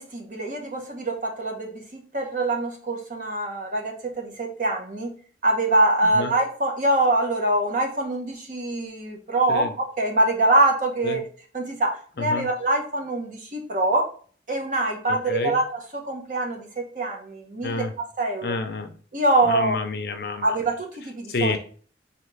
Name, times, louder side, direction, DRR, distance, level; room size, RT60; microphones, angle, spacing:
voice 1, 0.0-5.1 5.4-11.3 11.5-14.1 14.5-18.6 19.1-19.8 20.4-21.6, right 2 dB, 45° right, 1 dB, 1.0 m, -24 dB
voice 2, 18.4-18.9 19.5-20.5 21.3-21.6, left 3 dB, 60° left, 7 dB, 0.5 m, -28 dB
4.0 x 2.9 x 3.2 m, 0.43 s
head